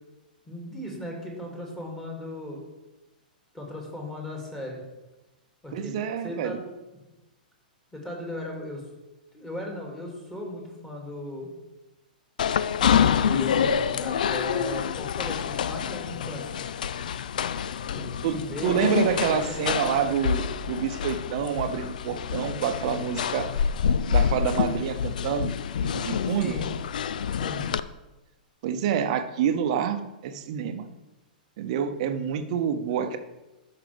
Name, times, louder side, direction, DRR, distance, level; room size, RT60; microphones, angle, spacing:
voice 1, 0.5-2.6 3.5-4.8 5.6-6.0 6.2-6.7 7.9-8.8 9.3-11.5 13.2-16.5 17.9-20.2 26.2-26.6 27.4-27.7, left 1 dB, 10° left, -1 dB, 2.5 m, -37 dB
voice 2, 5.7-6.6 18.2-23.5 24.1-25.5 25.8-26.5 28.6-30.9 31.6-33.2, right 8 dB, 50° right, 8 dB, 0.8 m, -27 dB
sound 1, 12.4-27.8, left 8 dB, 65° left, 0.4 m, -27 dB
13.5 x 5.8 x 3.5 m, 1.0 s
figure-of-eight pair, 105°, 5 cm